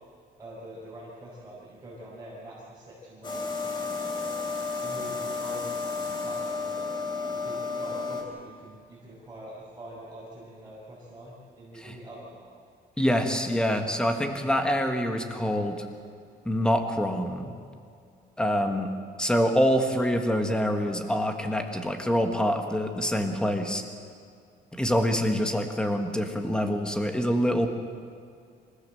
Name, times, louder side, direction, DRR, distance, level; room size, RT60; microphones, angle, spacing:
voice 1, 0.4-4.3 4.8-6.9 7.3-12.5, right 1 dB, 15° right, -9 dB, 5.4 m, -45 dB
sound 1, 3.2-8.2, left 4 dB, 25° left, 3.1 m, -32 dB
voice 2, 13.0-15.8 16.4-17.5 18.4-18.9 19.2-23.8 24.8-27.7, equal, 5° left, 5 dB, 1.5 m, -25 dB
26.0 x 16.0 x 7.8 m, 2.3 s
cardioid pair, 175°, 18 cm